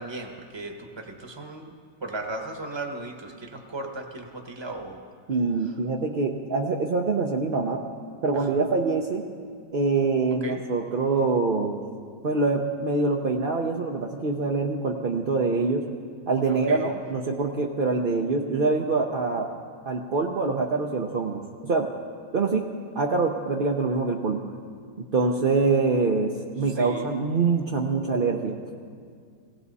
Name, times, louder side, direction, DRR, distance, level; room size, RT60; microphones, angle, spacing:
voice 1, 0.0-1.7 2.0-5.0 8.3-8.7 10.4-10.6 16.5-17.0 26.8-27.1, right 2 dB, 20° right, 3 dB, 0.9 m, -36 dB
voice 2, 5.3-7.8 8.2-9.2 9.7-11.8 12.2-15.9 16.3-19.5 19.9-21.9 22.3-22.7 22.9-24.4 25.1-28.6, right 4 dB, 60° right, 1 dB, 0.5 m, -25 dB
17.5 x 17.5 x 4.1 m, 2.1 s
omnidirectional pair, 1.9 m